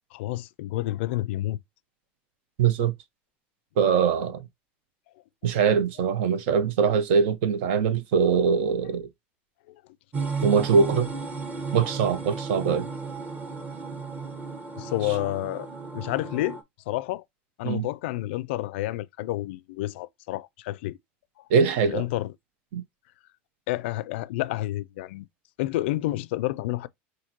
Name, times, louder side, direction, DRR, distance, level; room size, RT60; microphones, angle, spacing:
voice 1, 0.1-1.6 9.7-9.8 14.8-15.7 15.9-16.6 16.9-17.2 17.6-21.0 21.8-22.3 23.7-25.3 25.6-26.9, left 16 dB, 80° left, 0.3 m, -29 dB
voice 2, 2.6-2.9 3.8-4.4 5.4-9.1 10.4-11.1 11.7-12.9 17.6-17.8 21.5-22.0 22.7-22.8, right 6 dB, 75° right, 0.7 m, -22 dB
sound 1, 10.1-16.6, right 4 dB, 25° right, 1.1 m, -34 dB
5.8 x 2.7 x 2.8 m
supercardioid pair, 115°, 6 cm